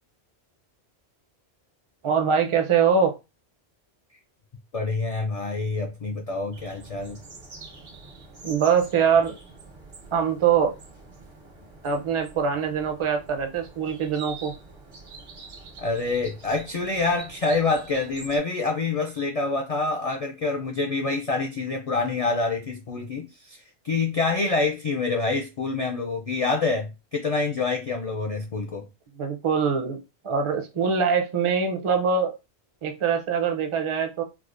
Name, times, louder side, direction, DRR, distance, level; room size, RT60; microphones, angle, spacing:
voice 1, 2.0-3.1 8.4-9.3 10.1-10.7 11.8-14.5 29.2-32.3 32.8-34.2, right 6 dB, 40° right, 0.5 m, -23 dB
voice 2, 4.7-7.2 15.8-28.9, left 3 dB, 55° left, 0.4 m, -26 dB
sound 1, 6.5-18.4, right 3 dB, 70° right, 1.2 m, -45 dB
4.6 x 2.0 x 2.4 m
omnidirectional pair, 1.1 m